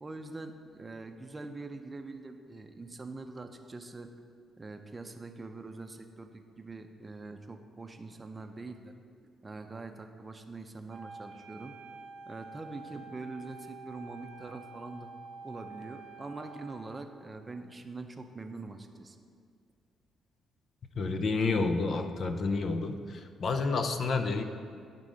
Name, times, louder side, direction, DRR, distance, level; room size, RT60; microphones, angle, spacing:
voice 1, 0.0-4.1 4.6-6.3 6.6-9.0 9.4-11.8 12.3-15.1 15.4-19.2, right 3 dB, 25° right, 6 dB, 0.6 m, -43 dB
Wind instrument woodwind instrument, 10.9-16.9, right 4 dB, 80° right, 0.8 m, -48 dB
voice 2, 21.0-24.4, left 3 dB, 55° left, 7 dB, 0.5 m, -30 dB
11.0 x 3.7 x 5.1 m, 2.2 s
cardioid pair, 90°, 0 cm